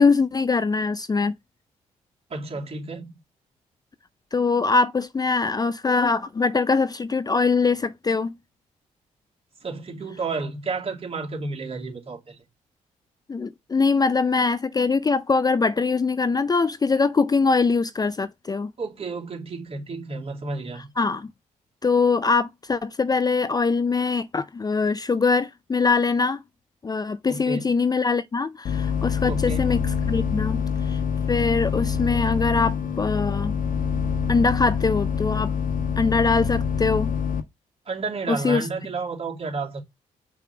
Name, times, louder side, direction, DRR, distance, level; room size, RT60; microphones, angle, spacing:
voice 1, 0.0-1.3 4.3-8.3 13.3-18.7 21.0-21.3 21.8-26.4 26.8-30.6 30.9-31.0 31.3-33.5 34.3-35.5 36.0-37.1 38.3-38.7, left 4 dB, 25° left, 0.4 m, -22 dB
voice 2, 2.3-3.2 9.6-12.4 18.8-20.9 27.3-27.7 29.2-29.7 37.9-39.8, right 3 dB, 40° right, 2.7 m, -31 dB
sound 1, 28.6-37.4, left 7 dB, 65° left, 1.3 m, -25 dB
5.7 x 3.5 x 5.8 m
supercardioid pair, 55°, 15 cm